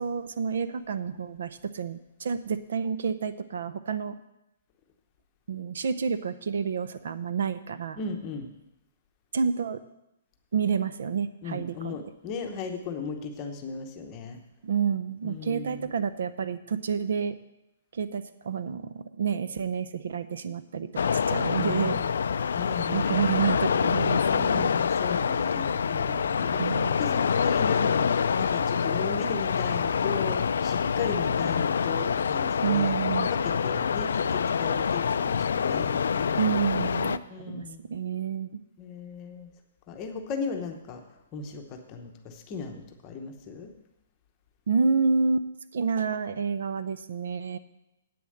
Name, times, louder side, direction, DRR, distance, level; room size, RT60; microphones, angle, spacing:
voice 1, 0.0-4.2 5.5-8.0 9.3-9.8 10.5-12.0 14.6-17.4 17.9-22.0 22.9-24.7 26.6-26.9 32.6-33.3 36.3-38.6 44.7-45.5 45.7-47.6, right 6 dB, 60° right, 13 dB, 0.6 m, -29 dB
voice 2, 8.0-8.5 11.4-14.4 15.2-15.9 21.6-22.1 22.5-23.6 24.3-33.0 33.3-36.4 37.3-37.8 38.8-39.5 39.9-41.0 41.3-43.7, left 5 dB, 20° left, 4 dB, 0.9 m, -37 dB
sound 1, 21.0-37.2, left 6 dB, 75° left, 0.4 m, -26 dB
8.6 x 6.9 x 7.8 m, 0.91 s
hypercardioid pair, 180°, 0 cm